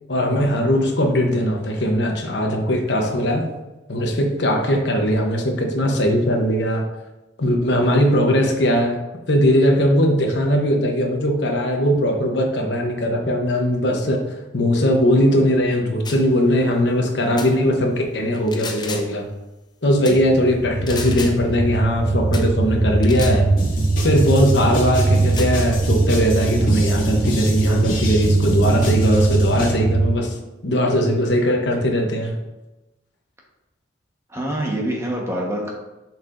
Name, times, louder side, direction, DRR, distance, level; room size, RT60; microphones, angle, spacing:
voice 1, 0.1-3.5 3.9-6.8 7.4-9.0 9.3-14.2 14.5-19.2 19.8-23.5 24.0-30.4 30.6-32.4, equal, 60° left, 2 dB, 1.0 m, -19 dB
sound 1, 16.0-16.3 17.4-17.5 18.3-19.2 20.0-20.2 20.9-21.4 22.3-22.5 23.0-23.4 24.2-24.3 25.2-25.6, left 4 dB, 20° left, 0.6 m, -33 dB
sound 2, 20.1-30.2, right 3 dB, 35° right, 0.5 m, -21 dB
sound 3, 23.6-29.8, left 1 dB, 45° left, 2.1 m, -30 dB
voice 2, 34.3-35.7, right 1 dB, 15° right, -2 dB, 1.2 m, -25 dB
6.9 x 5.6 x 2.6 m, 1.0 s
head